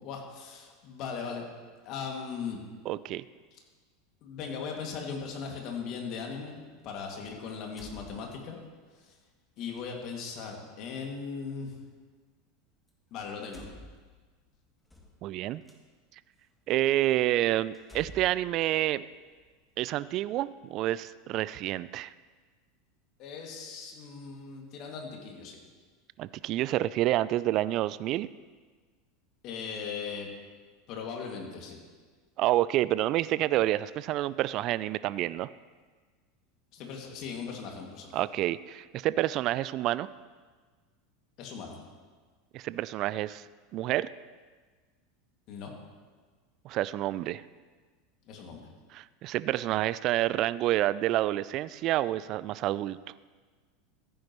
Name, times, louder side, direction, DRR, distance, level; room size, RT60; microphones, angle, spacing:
voice 1, 0.0-1.5 1.8-2.6 4.2-6.6 6.8-8.6 9.0-9.1 9.6-11.7 13.1-13.7 23.2-25.6 29.4-30.3 30.9-31.8 36.7-38.2 41.4-41.8 45.5-45.7 48.3-48.7, left 5 dB, 50° left, 1 dB, 2.2 m, -38 dB
voice 2, 2.9-3.2 15.2-15.6 16.7-19.0 19.8-22.1 26.2-28.3 32.4-35.5 38.1-40.1 42.5-43.4 43.7-44.1 46.6-47.4 48.9-53.0, right 14 dB, 50° right, 17 dB, 0.3 m, -28 dB
sound 1, 5.2-5.3 7.2-8.7 9.7-9.9 11.7-11.8 12.8-12.9 13.2-15.8 16.4-16.5 17.0-17.1 17.7-19.5, right 1 dB, 10° left, 1.8 m, -52 dB
14.5 x 9.4 x 3.1 m, 1.4 s
hypercardioid pair, 90°, 0 cm